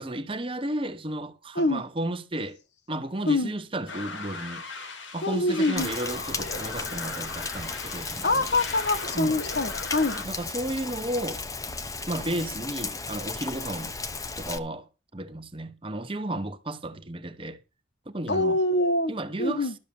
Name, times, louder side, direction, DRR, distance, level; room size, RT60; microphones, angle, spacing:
voice 1, 0.0-2.6 2.9-4.6 5.1-8.4 9.1-9.3 10.2-11.4 12.1-13.9 14.4-17.6 18.1-18.6 19.1-19.8, right 1 dB, 30° right, 1.0 m, -33 dB
sound 1, 3.9-10.2, left 3 dB, 80° left, 2.4 m, -38 dB
voice 2, 5.2-5.9 8.2-10.2 18.3-19.1 19.4-19.7, left 2 dB, 60° left, 1.3 m, -25 dB
Rain, 5.8-14.6, left 4 dB, 20° left, 0.7 m, -35 dB
12.0 x 6.6 x 7.0 m
head